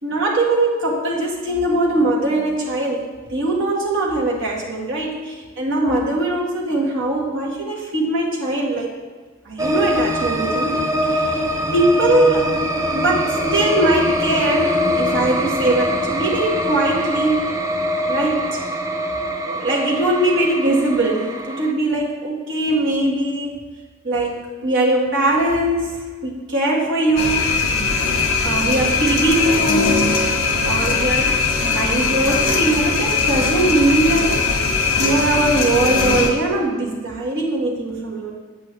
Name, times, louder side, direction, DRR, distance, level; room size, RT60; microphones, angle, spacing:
voice 1, 0.0-3.0 3.3-8.9 9.5-10.8 11.1-11.4 11.7-12.5 12.9-17.5 18.1-18.6 19.5-23.6 24.0-27.6 28.4-30.2 30.6-34.4 35.0-38.3, right 2 dB, 60° right, -3 dB, 1.7 m, -21 dB
sound 1, 9.6-21.7, equal, 15° right, 0.5 m, -23 dB
sound 2, 27.2-36.3, left 4 dB, 70° left, 1.4 m, -20 dB
8.4 x 8.3 x 3.3 m, 1.4 s
head